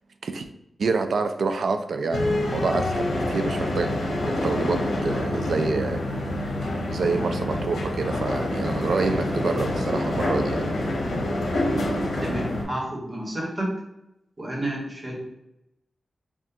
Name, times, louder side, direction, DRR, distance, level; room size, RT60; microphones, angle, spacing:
voice 1, 0.8-3.9 4.3-6.3 6.9-10.7, right 4 dB, 75° right, 8 dB, 0.3 m, -27 dB
sound 1, 2.1-12.6, left 1 dB, 90° left, 0.8 m, -26 dB
voice 2, 12.2-13.8 14.4-15.2, right 1 dB, 30° right, -2 dB, 1.2 m, -30 dB
5.8 x 2.4 x 2.7 m, 0.86 s
wide cardioid pair, 120°, 0 cm